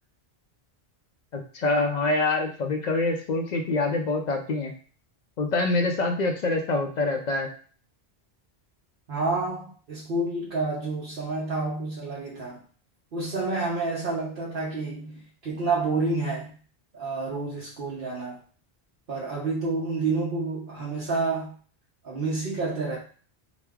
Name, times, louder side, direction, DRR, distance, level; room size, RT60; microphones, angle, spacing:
voice 1, 1.3-4.7 5.4-7.5, left 2 dB, 55° left, 3 dB, 0.5 m, -25 dB
voice 2, 9.1-12.6 13.1-16.5 16.9-18.4 19.1-21.5 22.0-23.0, right 3 dB, 60° right, -6 dB, 0.9 m, -29 dB
3.0 x 2.1 x 3.5 m, 0.42 s
omnidirectional pair, 1.1 m